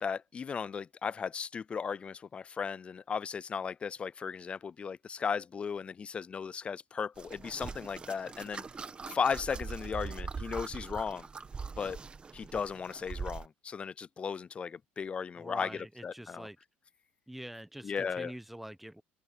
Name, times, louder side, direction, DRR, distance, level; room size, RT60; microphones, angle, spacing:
voice 1, 0.0-8.6 9.1-11.3 11.8-12.0 12.3-16.5 17.8-18.3, left 6 dB, 25° left, 0.3 m, -36 dB
sound 1, 7.2-13.5, right 5 dB, 20° right, 1.2 m, -42 dB
voice 2, 15.4-16.6 17.3-19.0, right 1 dB, 5° right, 1.0 m, -45 dB
supercardioid pair, 115°, 4 cm